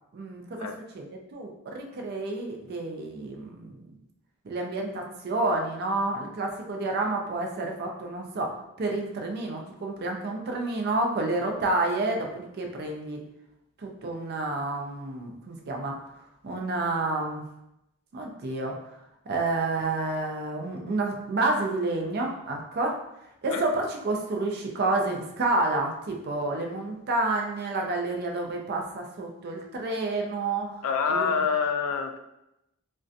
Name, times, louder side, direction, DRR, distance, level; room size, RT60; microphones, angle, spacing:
voice 1, 0.1-0.7 0.9-3.8 4.4-8.5 8.8-13.2 13.8-16.0 16.4-17.4 18.1-18.7 19.3-23.0 23.4-30.8 31.1-31.4, right 2 dB, 50° right, 2 dB, 0.4 m, -29 dB
voice 2, 30.8-32.2, left 6 dB, 90° left, 7 dB, 0.3 m, -26 dB
2.6 x 2.2 x 2.4 m, 0.86 s
head